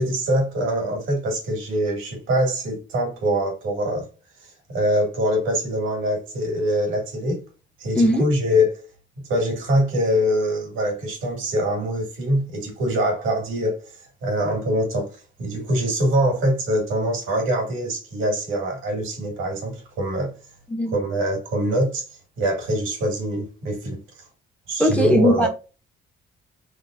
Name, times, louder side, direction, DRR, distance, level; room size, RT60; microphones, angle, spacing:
voice 1, 0.0-4.1 4.7-7.4 7.8-8.8 9.3-13.8 14.2-20.3 20.9-22.0 22.4-24.0 24.7-25.5, equal, 90° right, 2.2 m, -23 dB
voice 2, 24.8-25.5, equal, 5° left, 1.1 m, -18 dB
3.9 x 3.4 x 2.5 m
cardioid pair, 90°, 20 cm